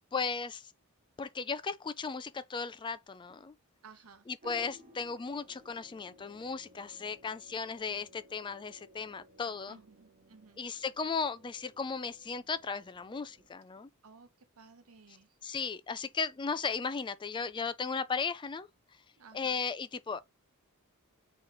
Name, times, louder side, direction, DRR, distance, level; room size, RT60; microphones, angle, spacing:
voice 1, 0.1-0.7 1.2-3.5 4.3-9.8 10.6-13.9 15.4-18.7 19.3-20.2, left 5 dB, 20° left, 0.3 m, -36 dB
voice 2, 3.8-4.3 9.7-10.6 14.0-15.4 19.2-19.6, right 5 dB, 80° right, 0.9 m, -56 dB
sound 1, 4.4-13.5, equal, 35° right, 0.8 m, -58 dB
4.3 x 3.1 x 3.8 m
head